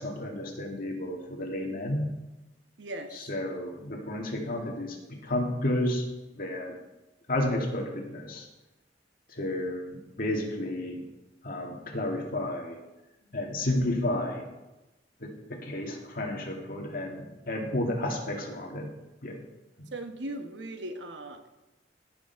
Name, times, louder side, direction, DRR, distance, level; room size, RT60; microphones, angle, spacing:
voice 1, 0.0-2.1 3.3-6.0 6.4-6.8 7.3-8.5 9.3-11.0 11.4-12.8 13.3-14.5 15.2-18.9 19.2-19.4, left 1 dB, 50° left, 1 dB, 2.0 m, -31 dB
voice 2, 2.8-3.3 19.9-21.5, right 1 dB, 75° right, 6 dB, 1.1 m, -38 dB
16.5 x 6.2 x 4.6 m, 1.0 s
head